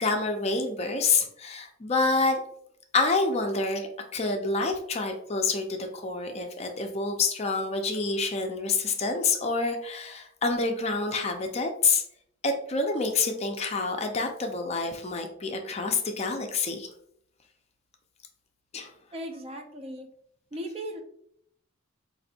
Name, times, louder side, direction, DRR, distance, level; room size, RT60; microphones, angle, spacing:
voice 1, 0.0-2.4 2.9-12.0 12.4-16.9 18.7-18.9, left 3 dB, 30° left, 4 dB, 0.4 m, -27 dB
voice 2, 19.1-20.1 20.5-21.0, equal, 30° right, 4 dB, 0.4 m, -37 dB
4.1 x 2.5 x 2.7 m, 0.69 s
head